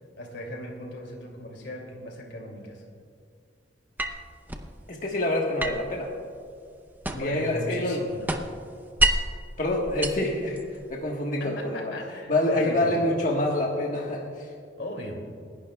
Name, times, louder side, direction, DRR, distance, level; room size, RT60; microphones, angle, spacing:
voice 1, 0.2-2.8 7.1-8.5 11.4-13.0 14.8-15.2, left 1 dB, 85° left, 1 dB, 2.5 m, -37 dB
sound 1, 4.0-4.7 5.6-7.5 7.8-9.4 9.8-10.9, right 1 dB, 10° right, 0.7 m, -29 dB
voice 2, 4.9-6.1 7.1-8.0 9.6-11.9 12.3-14.5, left 1 dB, 45° left, -2 dB, 1.4 m, -27 dB
29.0 x 11.5 x 2.3 m, 2.3 s
head